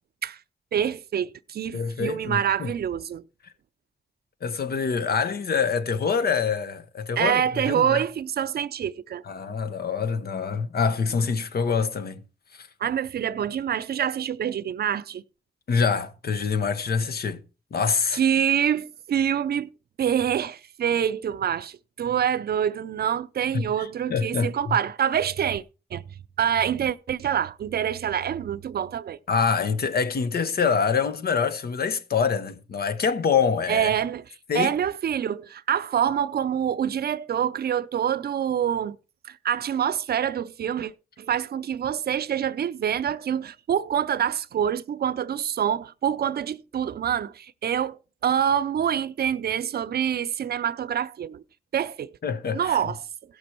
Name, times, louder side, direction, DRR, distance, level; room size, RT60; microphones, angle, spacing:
voice 1, 0.7-3.2 7.2-9.2 12.8-15.2 18.1-19.7 20.0-25.6 25.9-26.0 26.4-29.2 33.7-34.2 34.5-39.0 39.2-40.9 41.2-51.4 51.7-52.1 52.5-53.0, right 9 dB, 75° right, 0.5 m, -26 dB
voice 2, 1.7-2.7 4.4-8.0 9.3-12.2 12.6-12.7 15.7-17.4 17.7-18.2 23.5-23.6 24.1-24.8 29.3-33.9 34.5-34.7 52.2-52.8, left 6 dB, 70° left, 1.0 m, -25 dB
15.5 x 6.2 x 4.4 m
cardioid pair, 45°, 16 cm